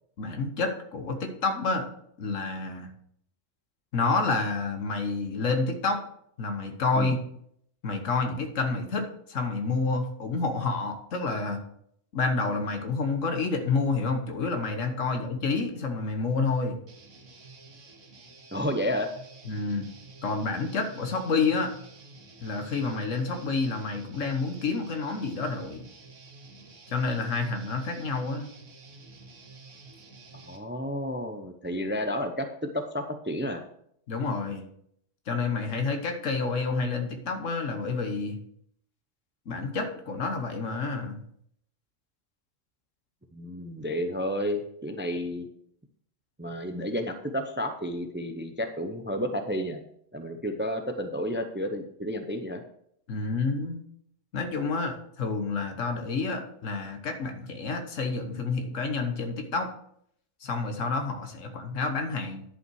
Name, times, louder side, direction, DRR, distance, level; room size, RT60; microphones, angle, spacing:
voice 1, 0.2-1.8 2.2-2.9 3.9-6.0 6.4-7.2 7.8-11.6 12.1-16.8 19.4-19.9 20.2-21.7 22.4-25.8 26.9-28.5 34.1-34.6 35.3-38.4 39.5-41.2 53.1-53.8 54.3-59.7 60.4-62.4, left 4 dB, 80° left, 6 dB, 1.5 m, -29 dB
Guitar, 16.9-30.6, right 3 dB, 75° right, 1.8 m, -50 dB
voice 2, 18.5-19.1 30.5-33.6 43.3-45.5 46.4-49.8 50.1-52.6, equal, 15° right, 7 dB, 0.4 m, -31 dB
10.5 x 5.5 x 4.7 m, 0.70 s
omnidirectional pair, 1.3 m